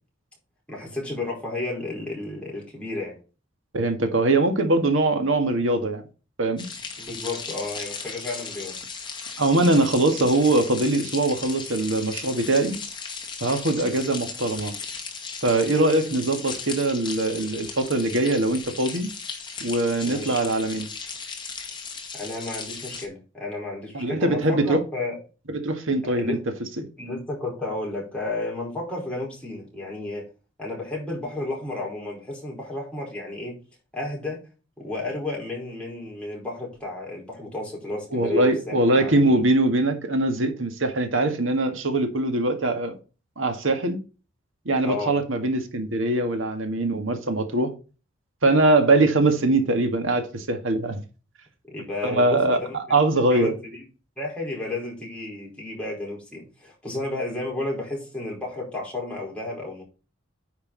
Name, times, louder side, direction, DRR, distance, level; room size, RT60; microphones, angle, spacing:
voice 1, 0.7-3.2 7.0-8.8 20.0-20.4 22.1-25.2 26.1-26.4 27.0-30.2 30.6-33.5 33.9-34.4 34.8-39.4 44.8-45.2 51.7-52.8 53.3-53.8 54.2-59.8, left 2 dB, 5° left, 4.8 m, -32 dB
voice 2, 3.7-6.0 6.4-6.7 9.4-12.8 13.4-14.7 15.4-19.1 19.6-20.9 23.9-24.8 25.5-26.4 26.8-26.9 38.1-43.0 43.4-44.0 44.7-47.7 48.4-51.0 52.0-53.5, right 2 dB, 80° right, 1.9 m, -22 dB
sound 1, 6.6-23.1, left 5 dB, 25° left, 2.0 m, -36 dB
9.9 x 5.7 x 4.1 m
head